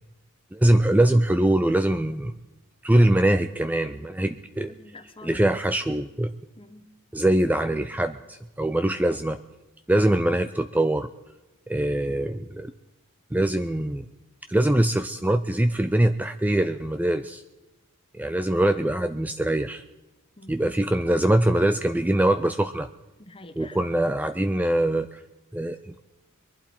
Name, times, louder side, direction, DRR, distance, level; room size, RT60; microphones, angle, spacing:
voice 1, 0.5-2.3 2.8-4.7 5.2-6.3 7.1-9.4 9.9-11.1 11.7-12.7 13.3-14.0 14.5-17.4 18.1-19.8 20.5-22.9 23.6-25.2 25.5-26.0, right 1 dB, 5° right, 9 dB, 0.4 m, -23 dB
voice 2, 4.6-5.5 6.6-6.9 20.4-20.6 23.2-23.8, left 2 dB, 25° left, 10 dB, 1.1 m, -46 dB
22.5 x 11.5 x 4.4 m, 1.1 s
head